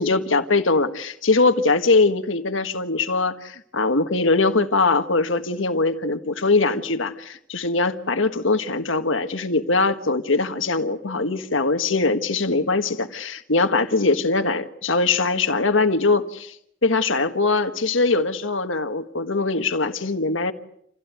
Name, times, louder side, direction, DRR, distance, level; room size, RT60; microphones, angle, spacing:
voice 1, 0.0-16.5 16.8-20.5, left 3 dB, 90° left, 1.6 m, -21 dB
28.0 x 16.5 x 9.5 m
head